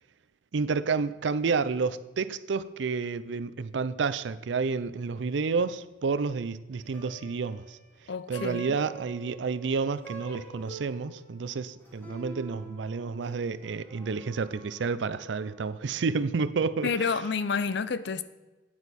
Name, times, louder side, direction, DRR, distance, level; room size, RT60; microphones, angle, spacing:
voice 1, 0.5-7.8 8.3-17.1, right 4 dB, 85° right, 15 dB, 0.5 m, -30 dB
Plucked string instrument, 6.7-16.1, right 4 dB, 10° left, 2.1 m, -47 dB
voice 2, 8.1-8.8 16.8-18.2, left 5 dB, 65° left, 15 dB, 0.5 m, -29 dB
8.9 x 8.8 x 4.2 m, 1.1 s
head